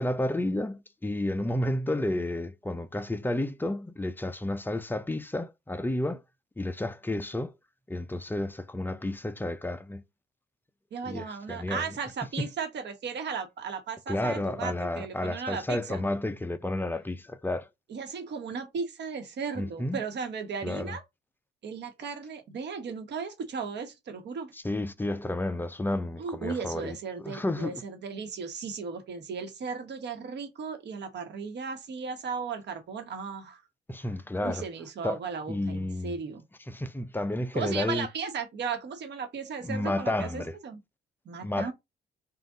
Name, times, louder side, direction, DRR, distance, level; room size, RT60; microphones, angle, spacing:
voice 1, 0.0-6.2 6.6-7.5 7.9-10.0 11.1-11.8 12.4-12.5 14.1-17.7 19.6-20.0 20.6-21.0 24.6-27.7 33.9-34.6 35.0-35.2 35.5-36.1 36.7-38.1 39.6-40.6 41.4-41.7, left 1 dB, 10° left, 0.4 m, -31 dB
voice 2, 10.9-16.0 17.9-21.0 21.6-24.5 26.2-33.6 34.4-36.4 37.5-40.8 41.2-41.7, right 5 dB, 60° right, 1.2 m, -36 dB
3.8 x 2.5 x 3.8 m
cardioid pair, 90°, 20 cm